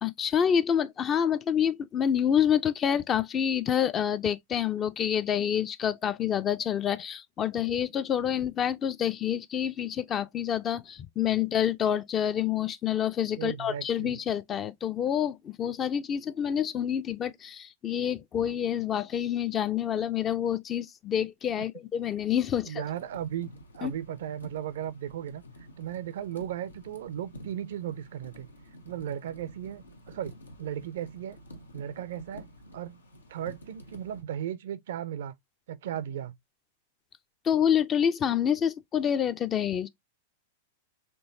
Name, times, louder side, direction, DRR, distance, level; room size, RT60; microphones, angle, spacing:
voice 1, 0.0-22.8 23.8-23.9 37.4-39.9, left 9 dB, 30° left, 0.4 m, -27 dB
voice 2, 13.4-14.2 22.6-25.4 25.8-28.5 28.8-31.4 31.7-32.5 32.7-33.0 33.3-35.3 35.7-36.4, right 10 dB, 60° right, 0.4 m, -36 dB
sound 1, 22.8-34.2, equal, 85° left, 0.7 m, -50 dB
4.4 x 3.1 x 2.7 m
figure-of-eight pair, 100°, 0 cm